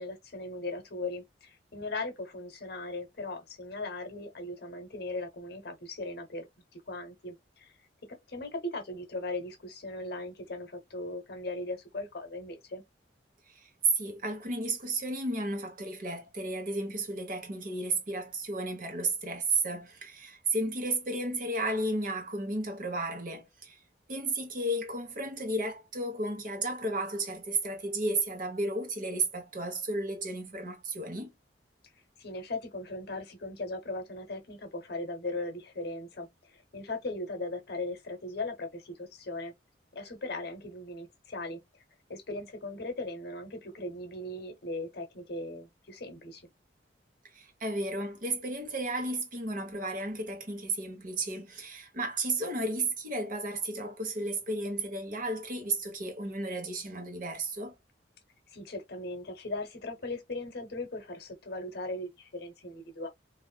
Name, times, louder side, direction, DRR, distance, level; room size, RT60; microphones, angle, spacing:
voice 1, 0.0-6.5 6.7-7.7 8.3-12.8 32.2-39.5 39.9-41.6 42.1-46.4 58.5-63.1, left 2 dB, 60° left, 0.9 m, -38 dB
voice 2, 13.6-23.8 24.1-31.3 47.3-57.7, right 2 dB, 45° right, 1.0 m, -33 dB
3.5 x 2.6 x 2.2 m
head